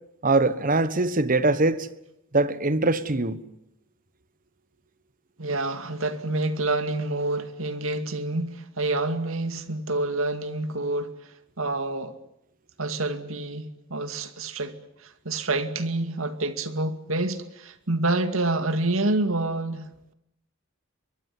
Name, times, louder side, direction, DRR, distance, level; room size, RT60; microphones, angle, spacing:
voice 1, 0.2-1.9 2.3-3.4, right 2 dB, 40° right, 1.3 m, -22 dB
voice 2, 5.4-11.1 11.6-12.2 12.8-19.9, right 2 dB, 75° right, 2.3 m, -28 dB
23.0 x 22.0 x 9.7 m
head